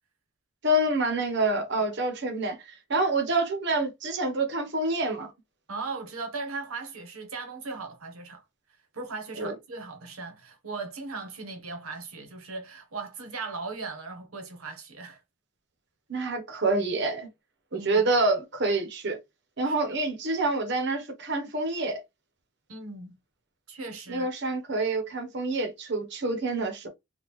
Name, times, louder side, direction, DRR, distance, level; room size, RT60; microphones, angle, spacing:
voice 1, 0.6-5.3 9.4-9.5 16.1-17.3 17.7-19.2 19.6-22.0 24.1-26.9, right 2 dB, 55° right, 0.8 m, -27 dB
voice 2, 5.7-8.4 8.9-15.2 17.7-18.0 19.6-19.7 22.7-23.2 23.7-24.3, right 3 dB, 80° right, 1.0 m, -38 dB
3.5 x 2.4 x 3.0 m
head